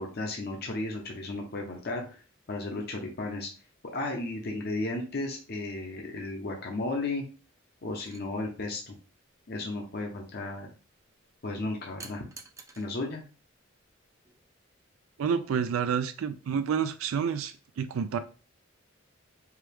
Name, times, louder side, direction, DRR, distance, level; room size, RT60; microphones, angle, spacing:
voice 1, 0.0-2.0 2.5-3.5 3.9-7.3 7.8-9.0 9.5-10.7 11.4-12.2 12.8-13.2, left 2 dB, 50° left, 2 dB, 0.7 m, -34 dB
sound 1, 8.0-8.2 12.0-12.9 14.2-14.5, right 4 dB, 15° right, 0.4 m, -47 dB
voice 2, 15.2-18.2, right 7 dB, 80° right, 9 dB, 0.4 m, -29 dB
4.6 x 2.3 x 3.4 m, 0.36 s
head